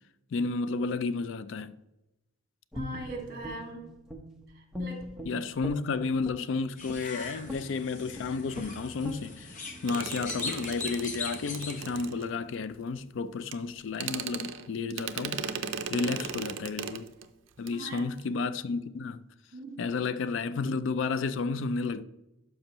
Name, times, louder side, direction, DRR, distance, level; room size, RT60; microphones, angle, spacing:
voice 1, 0.3-1.8 5.2-9.6 9.8-15.5 15.9-17.1 17.6-19.2 19.8-22.0, left 4 dB, 65° left, 0.4 m, -32 dB
Guitar, 2.7-4.4 4.7-6.5 6.9-7.1 7.5-7.8 8.1-8.3 8.5-8.7 9.0-9.2, left 1 dB, 5° right, 0.9 m, -39 dB
voice 2, 2.7-3.9 4.5-5.0 17.7-18.1 19.5-19.8, right 2 dB, 45° right, 2.0 m, -40 dB
sound 1, 6.8-12.1, left 3 dB, 40° left, 0.9 m, -40 dB
sound 2, 9.9-12.6 13.5-13.6 13.9-17.3 17.6-17.7 18.0-18.2, right 6 dB, 70° right, 0.5 m, -37 dB
12.0 x 5.3 x 3.0 m
head